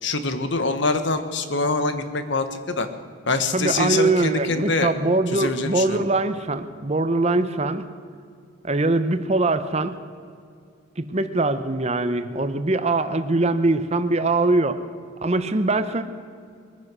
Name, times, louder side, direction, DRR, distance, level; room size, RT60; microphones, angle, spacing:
voice 1, 0.0-2.9 3.3-4.9 5.3-6.0, left 3 dB, 60° left, 9 dB, 1.2 m, -24 dB
voice 2, 3.5-7.9 8.6-10.0 11.0-14.8 15.2-16.0, right 2 dB, 30° right, 10 dB, 0.8 m, -22 dB
22.0 x 9.8 x 6.2 m, 2.2 s
head